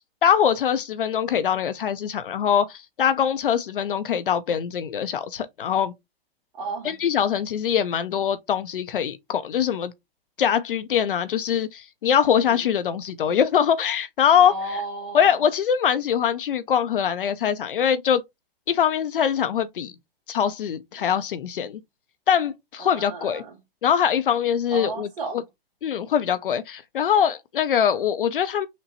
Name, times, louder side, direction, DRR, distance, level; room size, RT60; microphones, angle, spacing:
voice 1, 0.2-5.9 6.8-9.9 10.4-14.5 15.1-18.2 18.7-19.9 20.3-21.8 22.3-23.4 23.8-25.1 25.8-28.7, left 8 dB, 60° left, 0.6 m, -23 dB
voice 2, 6.5-7.0 12.5-12.6 14.4-15.4 21.0-21.1 22.8-23.6 24.7-25.4, right 3 dB, 50° right, 1.3 m, -34 dB
5.8 x 2.2 x 2.8 m
figure-of-eight pair, 120°, 31 cm